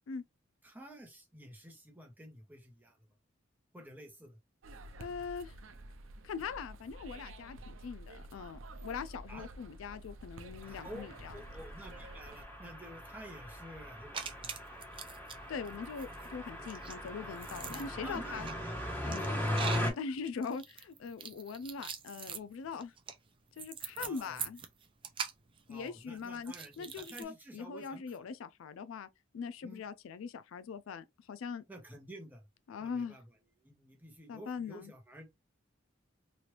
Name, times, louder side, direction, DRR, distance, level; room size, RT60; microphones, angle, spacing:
voice 1, 0.6-3.0 3.7-4.4 9.3-9.5 10.7-11.0 11.3-14.5 17.6-19.1 24.0-24.4 25.7-28.3 29.6-29.8 31.7-32.4 32.8-33.2 33.6-35.3, right 1 dB, 10° right, 0.9 m, -50 dB
sound 1, 4.6-12.4, right 1 dB, 75° right, 0.5 m, -50 dB
voice 2, 5.0-5.5 6.2-11.3 15.5-18.5 19.0-19.4 19.9-22.9 23.6-24.6 25.7-29.1 29.3-31.6 32.7-33.2 34.3-34.9, left 5 dB, 80° left, 0.4 m, -42 dB
sound 2, 10.6-19.9, left 1 dB, 10° left, 1.1 m, -39 dB
sound 3, 14.1-15.4 15.6-27.2, right 6 dB, 25° right, 0.4 m, -43 dB
3.0 x 2.5 x 3.1 m
head